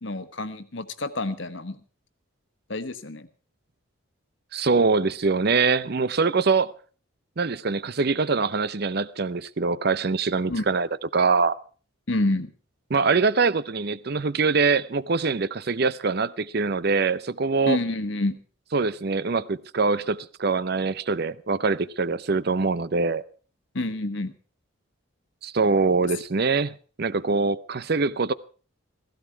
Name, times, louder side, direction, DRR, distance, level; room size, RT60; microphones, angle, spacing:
voice 1, 0.0-1.8 2.7-3.3 10.5-10.7 12.1-12.5 17.7-18.4 23.7-24.3, left 2 dB, 60° left, 1.4 m, -28 dB
voice 2, 4.5-6.7 7.4-10.9 11.1-11.6 12.9-17.8 18.7-23.2 25.4-28.3, right 4 dB, 50° right, 0.6 m, -23 dB
16.0 x 15.5 x 4.6 m
head